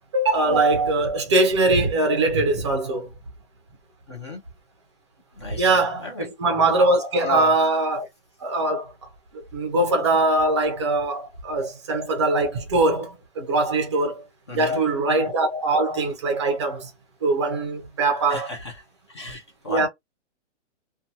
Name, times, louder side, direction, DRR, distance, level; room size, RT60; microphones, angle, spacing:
voice 1, 0.1-3.1 5.5-8.1 8.4-14.3 14.5-16.9 17.2-18.5 19.7-19.9, right 2 dB, 25° right, 0.5 m, -22 dB
voice 2, 4.1-4.4 5.4-6.3 7.2-7.5 14.5-14.8 18.3-18.7 19.1-19.9, left 2 dB, 25° left, 0.5 m, -33 dB
2.6 x 2.3 x 2.7 m
hypercardioid pair, 170°, 36 cm